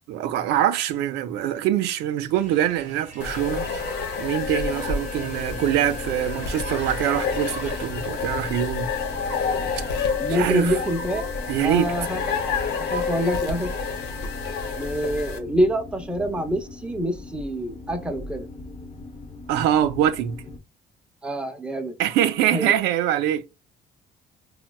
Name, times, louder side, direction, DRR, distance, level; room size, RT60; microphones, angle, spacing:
voice 1, 0.1-3.7 4.2-8.9 10.3-10.7 11.5-11.9 19.5-20.4 22.0-23.5, right 11 dB, 85° right, 0.4 m, -24 dB
sound 1, 2.3-7.9, right 4 dB, 45° right, 0.9 m, -44 dB
sound 2, 3.2-15.4, left 5 dB, 80° left, 0.7 m, -29 dB
sound 3, 4.4-20.6, left 2 dB, 40° left, 0.6 m, -40 dB
voice 2, 10.2-11.3 11.6-12.5 12.8-13.7 14.8-18.5 21.2-21.9 22.5-22.7, equal, 5° right, 0.6 m, -26 dB
4.2 x 2.0 x 2.2 m
cardioid pair, 110°, 17 cm